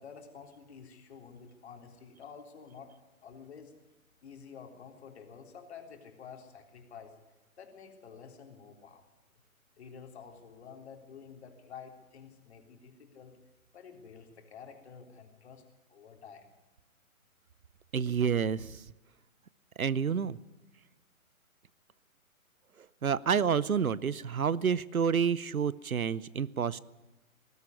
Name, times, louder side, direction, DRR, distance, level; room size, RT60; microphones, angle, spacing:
voice 1, 0.0-2.9 3.2-3.7 4.2-7.2 7.6-9.0 9.8-13.4 13.7-15.6 15.9-16.5, left 6 dB, 50° left, 3 dB, 3.7 m, -50 dB
voice 2, 17.9-18.8 19.8-20.4 23.0-26.8, right 7 dB, 75° right, 21 dB, 0.8 m, -29 dB
20.0 x 13.5 x 9.7 m, 1.1 s
figure-of-eight pair, 135°, 42 cm